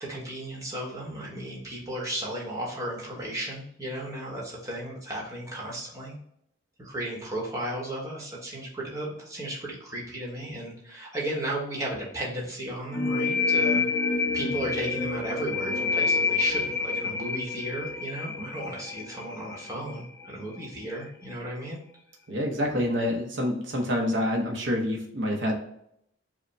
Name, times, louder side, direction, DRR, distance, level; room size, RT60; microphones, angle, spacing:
voice 1, 0.0-6.1 6.8-13.8 14.3-21.8, right 1 dB, 15° right, -4 dB, 1.1 m, -34 dB
sound 1, 12.9-20.3, left 4 dB, 10° left, 0.5 m, -28 dB
voice 2, 22.3-25.6, left 1 dB, 65° right, 0 dB, 0.7 m, -27 dB
4.9 x 2.2 x 3.2 m, 0.72 s
head